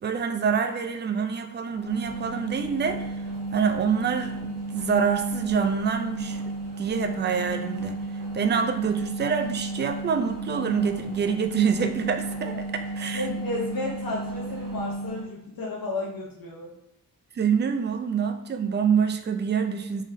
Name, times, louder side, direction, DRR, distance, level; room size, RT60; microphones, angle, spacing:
voice 1, 0.0-3.1 3.5-6.4 6.8-8.0 8.3-12.6 13.0-13.3 17.4-20.0, right 6 dB, 30° right, 6 dB, 0.4 m, -26 dB
sound 1, 1.7-15.3, right 2 dB, 90° right, 1.0 m, -34 dB
voice 2, 13.1-16.7, left 2 dB, 65° left, -4 dB, 0.8 m, -32 dB
3.8 x 3.1 x 2.6 m, 0.82 s
wide cardioid pair, 100°, 36 cm